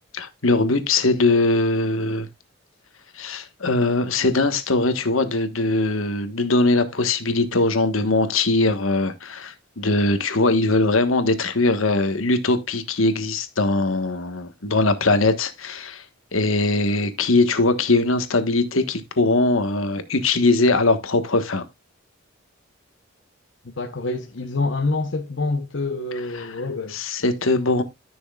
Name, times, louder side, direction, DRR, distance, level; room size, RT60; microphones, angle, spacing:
voice 1, 0.1-2.3 3.2-16.0 16.3-21.6 26.4-26.5 26.9-27.8, left 2 dB, 85° left, 1.4 m, -21 dB
voice 2, 23.8-27.0, left 3 dB, 60° left, 1.0 m, -26 dB
13.5 x 6.3 x 2.4 m
head